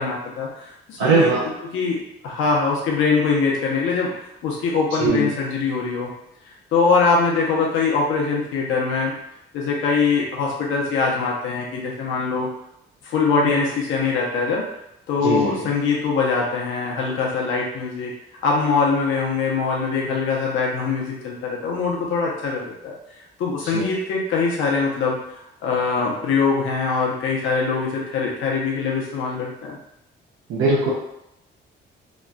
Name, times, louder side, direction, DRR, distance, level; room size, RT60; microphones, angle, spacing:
voice 1, 0.0-1.3 1.7-4.1 4.4-6.1 6.7-9.1 9.5-12.5 13.0-14.7 15.1-18.1 18.4-23.0 23.4-25.2 25.6-29.8, left 4 dB, 85° left, -3 dB, 0.8 m, -22 dB
voice 2, 1.0-1.5 5.0-5.3 15.2-15.7 23.7-23.9 30.5-30.9, right 3 dB, 80° right, -6 dB, 0.6 m, -20 dB
3.0 x 2.4 x 2.2 m, 0.84 s
cardioid pair, 90°, 20 cm